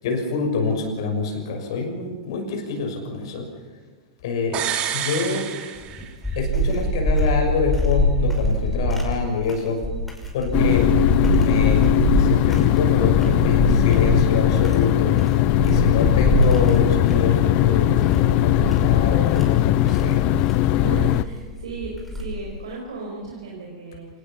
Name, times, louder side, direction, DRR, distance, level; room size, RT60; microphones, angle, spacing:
voice 1, 0.0-3.4 4.2-4.6 4.9-5.4 6.4-9.8 10.3-10.9 11.3-15.2 15.6-20.3, left 4 dB, 65° left, 4 dB, 6.2 m, -26 dB
sound 1, 4.5-6.5 6.8-6.9, right 9 dB, 40° right, 2.8 m, -28 dB
sound 2, 5.8-22.6, equal, 5° left, 5.7 m, -24 dB
sound 3, 10.5-21.2, left 16 dB, 45° left, 0.7 m, -19 dB
voice 2, 20.7-24.1, right 3 dB, 80° right, -2 dB, 5.0 m, -35 dB
27.5 x 19.0 x 5.9 m, 1.4 s
hypercardioid pair, 105°, 3 cm